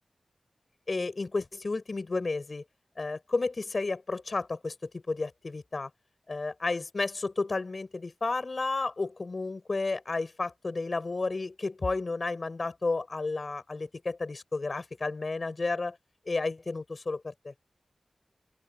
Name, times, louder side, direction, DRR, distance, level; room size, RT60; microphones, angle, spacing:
voice 1, 0.9-2.6 3.0-5.9 6.3-16.0 16.3-17.5, left 3 dB, 50° left, 6.4 m, -32 dB
open air
wide cardioid pair, 70°, 0 cm